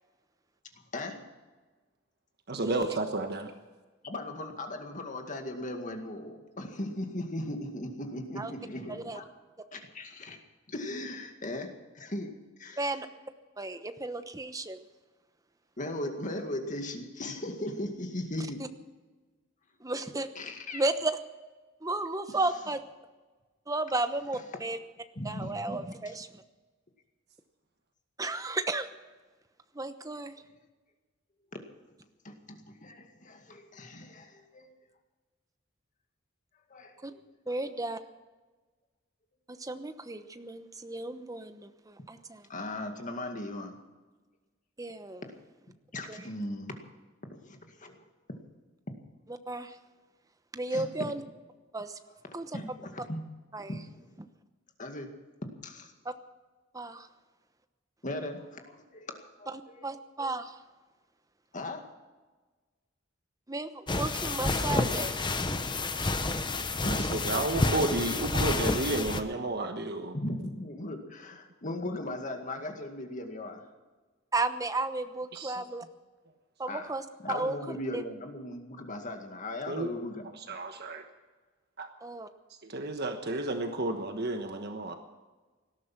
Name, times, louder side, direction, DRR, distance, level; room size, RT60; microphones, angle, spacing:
voice 1, 0.9-1.3 4.0-9.2 9.7-10.4 10.7-13.0 15.8-18.6 20.3-20.8 22.3-22.4 24.3-24.4 25.2-26.2 30.1-30.6 32.2-34.7 36.7-37.2 37.5-37.6 42.5-43.8 45.9-46.7 47.4-48.0 48.9-49.0 50.7-50.9 52.1-53.2 53.7-54.1 54.8-55.1 55.6-55.9 58.0-59.9 61.5-61.9 66.8-67.3 70.1-73.6 76.7-76.9 77.2-80.3, left 1 dB, 40° left, 4 dB, 2.1 m, -38 dB
voice 2, 2.5-3.5 66.9-70.2 75.3-75.6 79.7-79.9 80.5-81.0 81.8-81.9 82.6-85.0, right 2 dB, 55° right, 6 dB, 1.3 m, -32 dB
voice 3, 8.9-9.2 12.8-13.1 13.6-14.8 19.8-20.3 20.7-21.1 21.8-22.8 23.7-24.8 25.2-26.3 28.2-28.9 29.7-30.3 37.0-37.1 37.5-38.0 39.6-42.4 44.8-45.2 46.1-46.2 49.5-49.7 50.5-51.2 51.7-52.0 52.3-52.5 53.5-53.7 56.0-56.1 56.7-57.1 59.5-60.5 63.5-65.2 74.3-75.8 76.6-78.0 82.0-82.3, right 2 dB, 15° right, 9 dB, 1.0 m, -33 dB
sound 1, 63.9-69.2, left 2 dB, 25° left, 1.0 m, -29 dB
18.5 x 13.0 x 6.0 m, 1.3 s
head